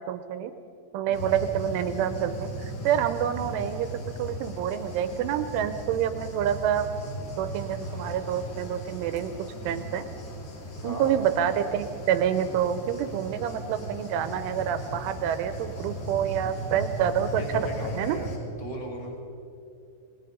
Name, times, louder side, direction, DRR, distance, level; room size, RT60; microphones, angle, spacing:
voice 1, 0.1-0.5 0.9-3.9 4.2-6.9 7.4-9.3 9.6-10.0 10.8-17.7 18.0-18.2, right 9 dB, 80° right, 10 dB, 3.0 m, -27 dB
sound 1, 1.1-18.4, equal, 55° left, 5.3 m, -37 dB
voice 2, 10.8-11.2 17.3-19.2, equal, 50° right, -2 dB, 0.4 m, -37 dB
27.0 x 19.5 x 5.1 m, 2.6 s
omnidirectional pair, 5.9 m